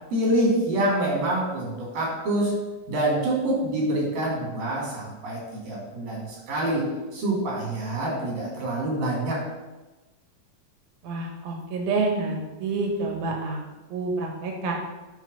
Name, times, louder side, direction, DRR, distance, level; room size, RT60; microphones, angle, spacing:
voice 1, 0.1-2.5 2.9-5.4 5.7-9.4, right 1 dB, 85° right, -4 dB, 5.0 m, -26 dB
voice 2, 11.0-13.6 13.9-14.7, right 3 dB, 55° right, 0 dB, 2.5 m, -28 dB
9.1 x 4.6 x 7.0 m, 1.1 s
omnidirectional pair, 3.9 m